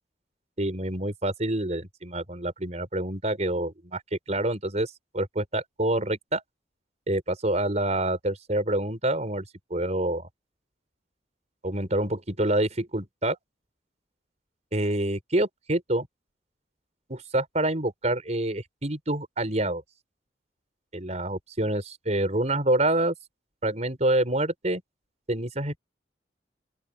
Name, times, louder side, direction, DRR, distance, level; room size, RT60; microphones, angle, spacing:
voice 1, 0.6-6.4 7.1-9.4 9.7-10.3 11.6-13.4 14.7-16.1 17.1-19.8 20.9-23.1 23.6-24.8 25.3-25.8, right 1 dB, 40° right, 4.8 m, -27 dB
open air
head